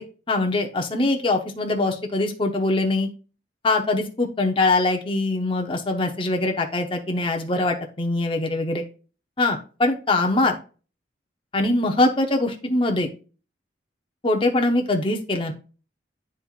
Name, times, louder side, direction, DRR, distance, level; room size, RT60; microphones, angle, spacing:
voice 1, 0.0-3.1 3.6-8.8 9.4-10.5 11.5-13.1 14.2-15.5, left 2 dB, 30° left, 3 dB, 0.8 m, -23 dB
9.8 x 4.3 x 2.4 m, 0.35 s
head